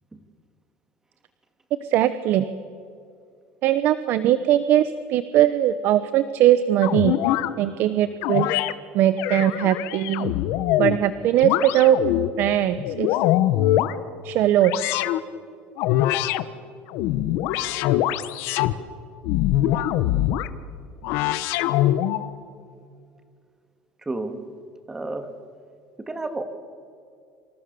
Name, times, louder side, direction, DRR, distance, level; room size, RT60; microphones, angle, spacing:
voice 1, 1.8-2.5 3.6-7.2 7.6-8.5 8.9-10.3 10.8-12.0 12.4-13.2 14.2-14.7, right 12 dB, 55° right, 12 dB, 1.0 m, -20 dB
sound 1, 6.8-7.5 8.2-8.7 9.2-11.0 11.4-12.3 12.8-14.0 14.6-15.2 15.8-16.4 16.9-18.8 19.2-20.5 21.0-22.3, left 14 dB, 70° left, 1.3 m, -23 dB
voice 2, 24.0-24.4 24.9-25.4 26.0-26.4, right 2 dB, 10° right, 8 dB, 2.2 m, -31 dB
28.0 x 26.5 x 7.0 m, 2.3 s
cardioid pair, 145°, 4 cm